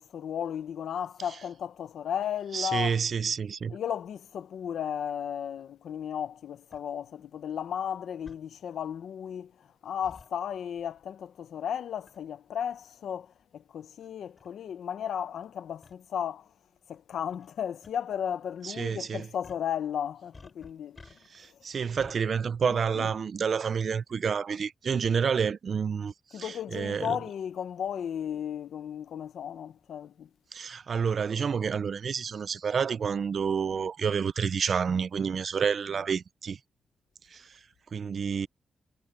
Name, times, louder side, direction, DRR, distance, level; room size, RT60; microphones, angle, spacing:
voice 1, 0.0-2.9 3.7-16.5 16.9-21.0 22.6-23.1 26.3-30.3, left 9 dB, 85° left, 1.0 m, -35 dB
voice 2, 2.5-3.8 18.6-19.3 21.3-27.2 30.5-36.6 37.3-37.6 37.9-38.5, right 6 dB, 50° right, 0.5 m, -29 dB
sound 1, 6.7-6.8 8.3-8.4 10.0-10.3 12.1-12.3 13.1-13.2 14.0-14.1 14.4-14.5 15.8-16.0 17.3-17.5 17.8-17.9 19.4-19.7 20.3-21.5 22.0-22.2, left 3 dB, 30° left, 5.1 m, -51 dB
wide cardioid pair, 140°, 0 cm